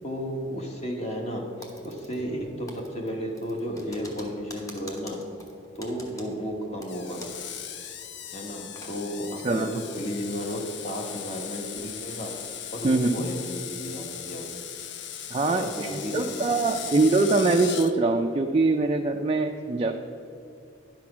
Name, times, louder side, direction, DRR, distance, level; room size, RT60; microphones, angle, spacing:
voice 1, 0.0-1.4 1.8-5.2 5.7-7.2 8.3-9.6 9.9-12.3 12.7-14.5 15.5-16.9, equal, 30° left, 1 dB, 1.3 m, -33 dB
Typing, 1.6-2.4 2.7-7.5 7.8-7.9 8.4-8.9, equal, 15° left, 1.0 m, -46 dB
Screech, 6.9-17.9, left 9 dB, 55° left, 0.5 m, -38 dB
voice 2, 9.4-9.8 12.8-13.2 15.3-19.9, right 3 dB, 25° right, 3 dB, 0.4 m, -23 dB
10.5 x 6.1 x 5.9 m, 2.7 s
head